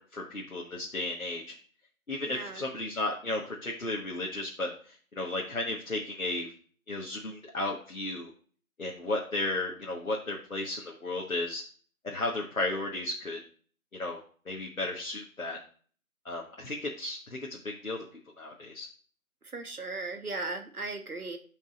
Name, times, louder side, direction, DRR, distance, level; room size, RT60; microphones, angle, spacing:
voice 1, 0.0-1.5 2.1-6.5 6.9-8.3 8.8-11.6 12.0-13.4 13.9-14.2 14.4-15.6 16.2-18.0 18.4-18.9, left 2 dB, 70° left, -2 dB, 1.6 m, -34 dB
voice 2, 2.2-2.6 19.4-21.4, right 3 dB, 85° right, 6 dB, 1.5 m, -37 dB
10.5 x 5.3 x 2.5 m, 0.43 s
figure-of-eight pair, 180°, 43 cm